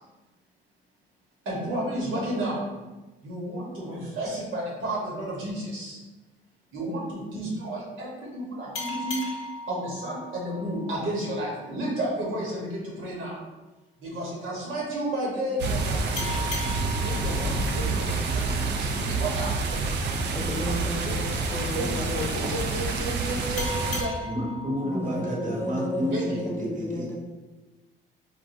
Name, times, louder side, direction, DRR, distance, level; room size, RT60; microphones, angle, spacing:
voice 1, 1.4-2.7 3.2-6.0 6.7-9.2 9.7-13.4 14.0-16.3 17.0-19.8 21.0-21.1 21.7-24.1 26.1-26.4, right 1 dB, 85° right, -4 dB, 1.1 m, -32 dB
sound 1, 8.7-12.0 16.2-19.4 23.6-26.5, left 2 dB, 90° left, 0.7 m, -38 dB
sound 2, 15.6-24.0, right 3 dB, 60° right, 0.4 m, -28 dB
voice 2, 20.3-22.5 24.9-27.2, left 1 dB, 10° left, -2 dB, 0.4 m, -33 dB
voice 3, 24.2-26.2 26.4-27.1, equal, 40° right, -2 dB, 0.9 m, -31 dB
3.5 x 2.2 x 2.6 m, 1.1 s
cardioid pair, 90°, 20 cm